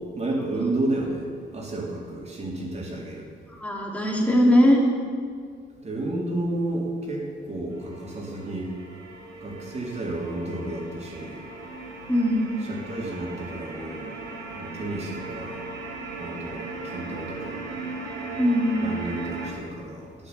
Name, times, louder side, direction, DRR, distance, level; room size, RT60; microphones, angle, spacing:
voice 1, 0.1-3.3 5.8-8.7 9.4-11.5 12.6-14.2 14.5-15.7 16.2-17.7 18.8-20.3, right 2 dB, 35° right, -2 dB, 3.6 m, -31 dB
voice 2, 3.6-4.8 12.1-12.5 18.4-18.8, equal, 5° left, -2 dB, 3.2 m, -20 dB
sound 1, 7.7-19.5, right 3 dB, 80° right, 4.1 m, -38 dB
12.5 x 9.0 x 8.4 m, 2.1 s
cardioid pair, 90°, 20 cm